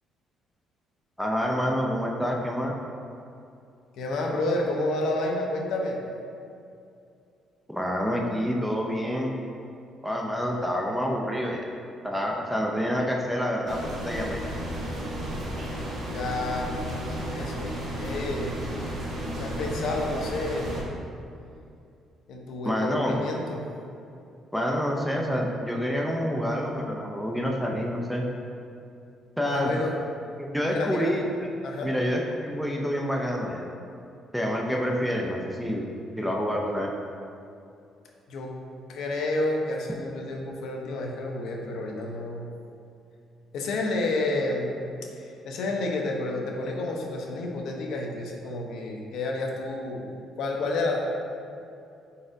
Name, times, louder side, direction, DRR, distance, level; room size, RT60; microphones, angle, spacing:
voice 1, 1.2-2.7 7.7-9.3 10.0-11.7 12.0-14.4 22.6-23.1 24.5-28.2 29.4-29.7 30.4-31.2 31.8-33.7 34.3-35.8 36.2-36.9, equal, ahead, -1 dB, 0.4 m, -27 dB
voice 2, 3.9-6.0 16.1-16.7 17.3-17.7 18.0-18.5 19.4-20.9 22.3-23.6 29.4-30.0 30.7-31.1 31.6-31.9 38.3-38.5 38.9-42.5 43.5-50.1 50.4-51.1, left 2 dB, 70° left, 1 dB, 0.6 m, -30 dB
sound 1, 13.7-20.8, equal, 45° right, 0.9 m, -33 dB
4.7 x 4.1 x 2.6 m, 2.6 s
cardioid pair, 145°, 0 cm